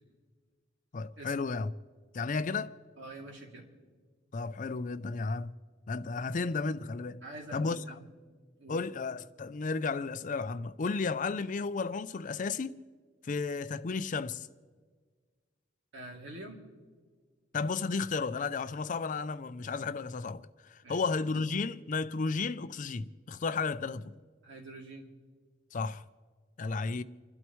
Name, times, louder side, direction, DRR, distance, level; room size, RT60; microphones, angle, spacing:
voice 1, 0.9-1.7 2.1-2.8 4.3-5.5 5.9-7.2 7.5-8.0 8.7-12.8 13.2-14.5 17.5-24.1 25.7-26.0 26.6-27.0, left 4 dB, 40° left, 0.4 m, -33 dB
voice 2, 3.0-3.7 7.2-8.0 8.6-8.8 15.9-16.6 20.8-21.0 24.4-25.1, right 1 dB, 65° right, 2.7 m, -45 dB
30.0 x 12.0 x 3.1 m
head